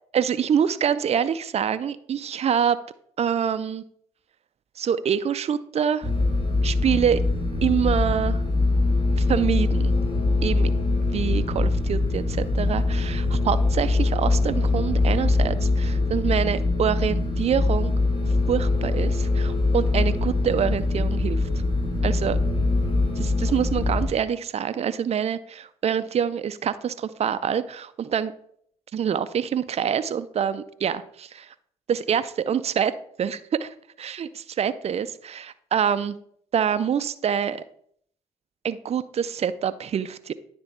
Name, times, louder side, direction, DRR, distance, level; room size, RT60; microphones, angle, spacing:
voice 1, 0.1-2.8 3.2-3.8 4.8-6.1 6.6-7.2 7.6-8.4 9.2-9.9 10.4-10.7 11.1-17.9 18.5-21.5 22.0-22.4 23.2-28.3 28.9-31.5 31.9-36.2 36.5-37.6 38.6-40.3, right 8 dB, 40° right, 13 dB, 0.4 m, -26 dB
sound 1, 6.0-24.1, left 2 dB, 35° left, 2.3 m, -23 dB
9.6 x 3.4 x 4.2 m, 0.65 s
hypercardioid pair, 45°, 16 cm